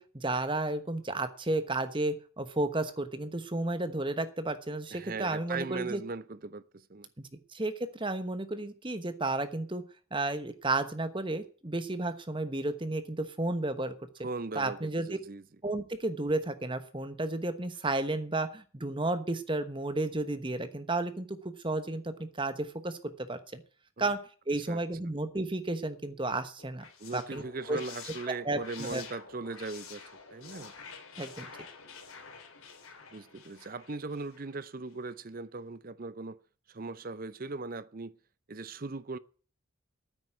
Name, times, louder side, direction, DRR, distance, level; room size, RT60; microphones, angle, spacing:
voice 1, 0.0-6.0 7.2-9.8 10.1-13.9 14.5-15.1 15.6-21.4 21.6-23.6 24.0-24.2 24.5-26.8 27.1-27.8 28.4-29.0 31.2-31.5, right 2 dB, 25° right, 1.1 m, -32 dB
voice 2, 4.9-7.1 14.2-15.4 24.0-24.1 24.7-24.8 27.0-30.7 33.1-36.4 36.7-38.1 38.5-39.2, right 3 dB, 40° right, 0.6 m, -39 dB
sound 1, 26.6-34.6, left 5 dB, 80° left, 3.3 m, -48 dB
9.5 x 9.1 x 9.2 m
head